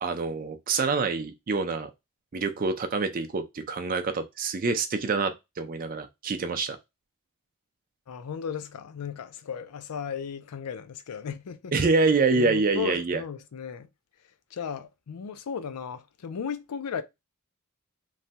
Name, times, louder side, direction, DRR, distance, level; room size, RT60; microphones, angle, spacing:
voice 1, 0.0-1.9 2.3-6.8 11.7-13.2, right 4 dB, 40° right, 0.4 m, -26 dB
voice 2, 8.1-11.7 12.3-13.9 14.5-17.0, left 7 dB, 85° left, 0.4 m, -35 dB
3.1 x 2.2 x 2.7 m
head